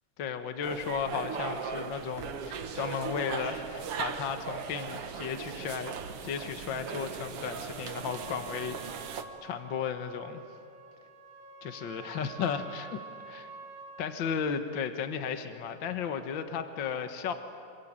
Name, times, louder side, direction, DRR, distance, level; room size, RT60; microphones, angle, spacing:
voice 1, 0.2-6.0 6.2-8.9 9.4-10.4 11.6-13.0 13.3-13.5 14.0-17.3, left 7 dB, 55° left, 7 dB, 1.5 m, -34 dB
sound 1, 0.6-9.2, right 7 dB, 55° right, 1.8 m, -38 dB
Trumpet, 8.0-14.3, right 4 dB, 75° right, 4.7 m, -47 dB
27.0 x 23.5 x 8.9 m, 2.5 s
omnidirectional pair, 3.7 m